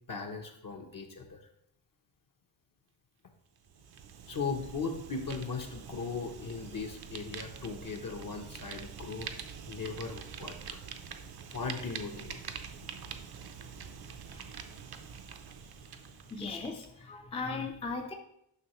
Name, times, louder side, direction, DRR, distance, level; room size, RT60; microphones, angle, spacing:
voice 1, 0.1-1.4 4.3-9.3 9.7-10.8 11.5-12.4, left 4 dB, 45° left, 2 dB, 0.8 m, -38 dB
Fire, 3.6-16.9, right 7 dB, 55° right, 0.6 m, -45 dB
voice 2, 16.3-18.1, left 4 dB, 15° left, 3 dB, 0.4 m, -37 dB
9.7 x 6.2 x 3.0 m, 0.78 s
wide cardioid pair, 165°, 46 cm